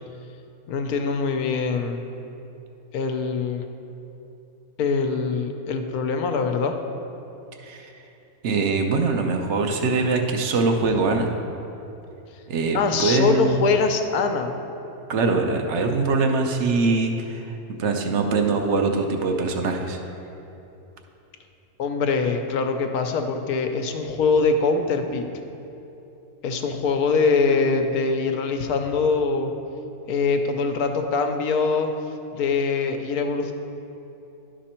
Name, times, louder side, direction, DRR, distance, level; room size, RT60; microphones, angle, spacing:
voice 1, 0.7-2.0 2.9-3.6 4.8-6.8 12.7-14.5 21.8-25.3 26.4-29.5 30.1-31.9 32.3-33.5, left 4 dB, 80° left, 6 dB, 1.1 m, -23 dB
voice 2, 7.6-7.9 8.4-11.3 12.5-13.6 15.1-20.0, right 3 dB, 60° right, 4 dB, 0.9 m, -23 dB
11.0 x 5.2 x 4.3 m, 3.0 s
omnidirectional pair, 1.6 m